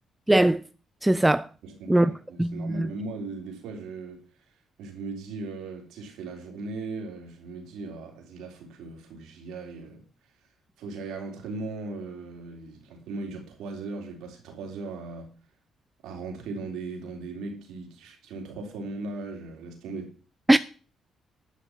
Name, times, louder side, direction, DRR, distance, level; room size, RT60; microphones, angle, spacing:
voice 1, 0.3-0.6 1.0-1.5 1.9-2.1 2.4-2.9 20.5-20.6, right 1 dB, 10° right, 0.4 m, -20 dB
voice 2, 1.6-4.5 4.8-10.0 10.8-15.3 16.0-20.1, right 3 dB, 85° right, 3.8 m, -38 dB
11.5 x 6.1 x 7.4 m
cardioid pair, 90°, 0 cm